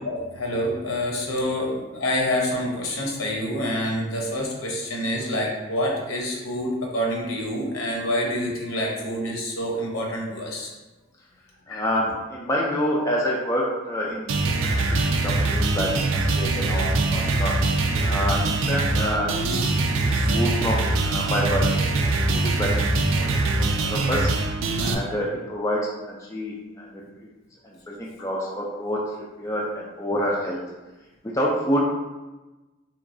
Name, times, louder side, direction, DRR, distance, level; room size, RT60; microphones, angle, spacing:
voice 1, 0.1-10.7 11.7-11.8 20.2-20.3, equal, 75° left, -1 dB, 0.8 m, -27 dB
voice 2, 11.7-14.3 14.6-17.5 18.0-19.7 20.0-22.8 23.2-23.5 23.8-24.3 24.8-27.0 27.6-30.6 31.3-31.8, equal, 15° left, -4 dB, 0.3 m, -28 dB
sound 1, 14.3-24.9, right 2 dB, 65° right, 0.3 m, -23 dB
3.6 x 3.0 x 2.5 m, 1.1 s
head